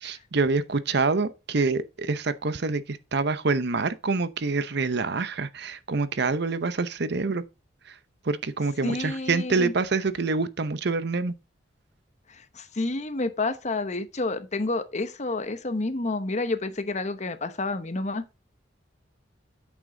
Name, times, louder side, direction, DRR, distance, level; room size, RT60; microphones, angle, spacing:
voice 1, 0.0-7.4 7.9-8.0 8.2-11.3, right 3 dB, 60° right, 0.8 m, -26 dB
voice 2, 8.8-9.7 12.3-18.2, left 2 dB, 40° left, 1.0 m, -29 dB
8.5 x 6.3 x 3.9 m
head